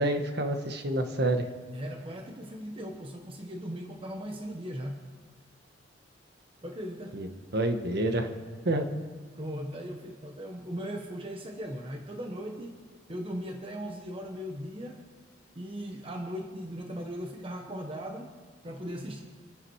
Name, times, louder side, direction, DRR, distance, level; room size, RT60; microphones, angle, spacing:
voice 1, 0.0-1.5 7.1-7.3 7.5-8.3 8.6-8.9, right 1 dB, 55° right, 6 dB, 1.5 m, -28 dB
voice 2, 1.7-5.0 6.6-7.2 9.3-15.0 15.5-18.4 18.6-19.2, equal, 30° right, 2 dB, 1.2 m, -38 dB
27.5 x 11.0 x 4.8 m, 1.5 s
head